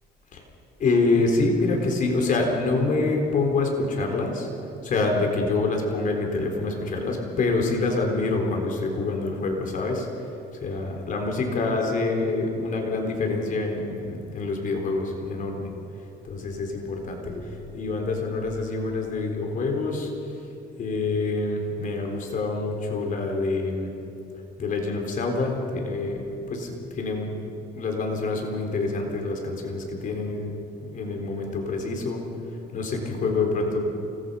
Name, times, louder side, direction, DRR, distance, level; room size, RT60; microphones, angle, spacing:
voice 1, 0.8-4.5 4.8-10.1 10.6-15.7 16.2-20.1 20.8-23.9 24.6-27.3 27.7-30.5 30.8-32.2 32.7-33.8, left 3 dB, 50° left, 2 dB, 4.0 m, -26 dB
29.0 x 19.5 x 5.6 m, 2.9 s
cardioid pair, 110°, 17 cm